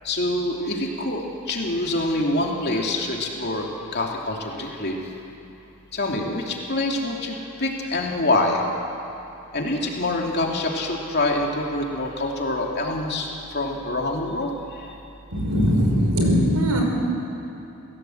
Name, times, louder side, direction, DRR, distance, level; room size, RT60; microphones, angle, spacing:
voice 1, 0.0-1.2 1.5-5.0 5.9-8.6 9.5-13.3 13.5-14.5, left 2 dB, 45° left, 0 dB, 2.9 m, -25 dB
voice 2, 15.3-16.8, equal, 85° right, 0 dB, 5.5 m, -20 dB
28.0 x 17.0 x 8.0 m, 2.9 s
head